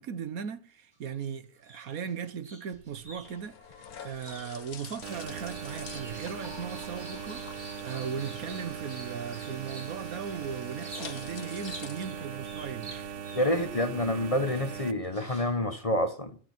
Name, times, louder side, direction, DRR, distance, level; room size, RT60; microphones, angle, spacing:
voice 1, 0.0-3.6 4.0-13.4, right 7 dB, 75° right, 1.5 m, -38 dB
sound 1, 0.9-1.3 1.6-10.0 10.8-11.3 11.6-13.9 14.5-15.7, right 1 dB, 30° right, 3.7 m, -49 dB
sound 2, 2.7-13.1, left 7 dB, 90° left, 1.8 m, -48 dB
sound 3, 5.0-14.9, right 8 dB, 60° right, 1.2 m, -40 dB
voice 2, 13.3-16.4, left 1 dB, 25° left, 1.1 m, -28 dB
14.0 x 12.0 x 6.0 m
omnidirectional pair, 1.5 m